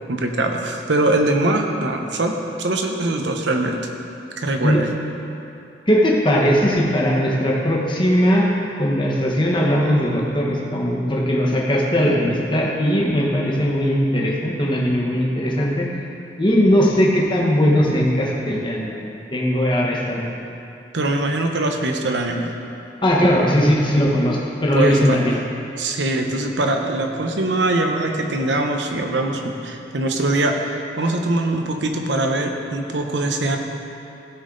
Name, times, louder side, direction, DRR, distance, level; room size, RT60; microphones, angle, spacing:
voice 1, 0.1-3.8 4.4-4.9 20.9-22.5 24.7-25.2 25.8-33.6, right 2 dB, 85° right, 3 dB, 0.9 m, -22 dB
voice 2, 5.9-8.5 8.8-15.9 16.4-20.3 23.0-25.4, equal, 25° left, -3 dB, 1.3 m, -19 dB
15.5 x 5.4 x 4.0 m, 2.8 s
head